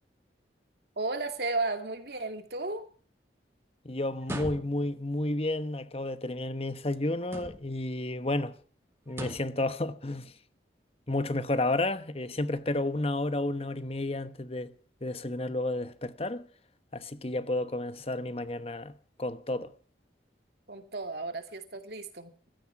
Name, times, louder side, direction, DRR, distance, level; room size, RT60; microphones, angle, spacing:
voice 1, 1.0-2.8 20.7-22.5, right 3 dB, 60° right, 2.6 m, -34 dB
voice 2, 3.8-8.6 9.1-10.3 11.1-14.7 15.0-16.5 16.9-18.9 19.2-19.7, left 2 dB, 30° left, 1.0 m, -31 dB
sound 1, 4.2-5.0 7.2-7.9 9.1-9.6, right 1 dB, 15° right, 2.4 m, -40 dB
16.0 x 13.5 x 5.9 m
head